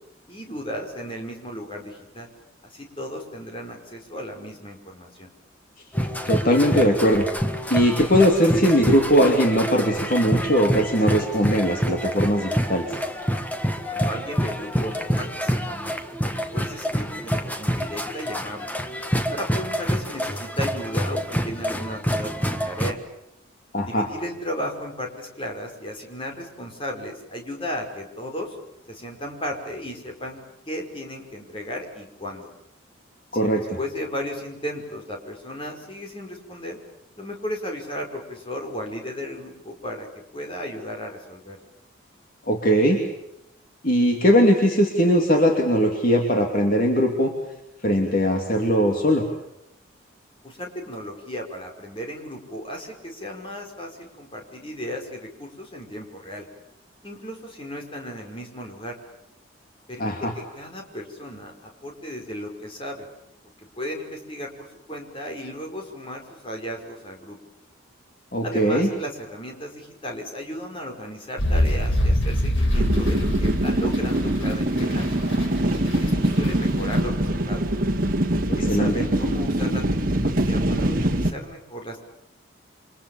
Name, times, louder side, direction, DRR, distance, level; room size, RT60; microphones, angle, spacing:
voice 1, 0.3-2.3 2.6-5.3 13.8-18.7 19.3-23.0 23.9-28.6 28.9-32.5 33.3-36.8 37.2-40.1 40.3-41.7 50.4-56.5 57.0-59.0 59.9-63.1 63.6-67.4 68.4-75.1 76.0-77.7 78.5-82.0, equal, 25° left, 2 dB, 5.4 m, -35 dB
sound 1, 5.9-22.9, equal, 10° left, 1.5 m, -27 dB
voice 2, 6.3-7.3 7.7-13.0 23.7-24.1 33.3-33.6 42.5-43.0 43.8-47.3 47.8-49.3 60.0-60.3 68.3-68.9 78.7-78.9, equal, 45° left, 2 dB, 2.9 m, -20 dB
sound 2, 71.4-77.0, equal, 75° left, 4.4 m, -24 dB
sound 3, 72.7-81.3, right 1 dB, 45° right, 2.3 m, -23 dB
29.5 x 25.5 x 7.3 m, 0.83 s
head